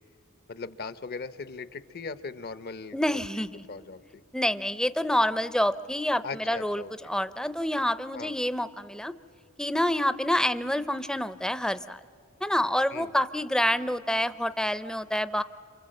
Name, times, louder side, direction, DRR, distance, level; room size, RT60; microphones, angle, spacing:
voice 1, 0.5-4.2 6.2-7.1 8.1-8.3 12.9-13.1, left 4 dB, 50° left, 14 dB, 0.7 m, -39 dB
voice 2, 2.9-3.6 4.3-9.1 9.6-12.0 12.4-15.4, left 1 dB, 5° left, 14 dB, 0.6 m, -27 dB
27.5 x 27.0 x 7.7 m, 2.5 s
head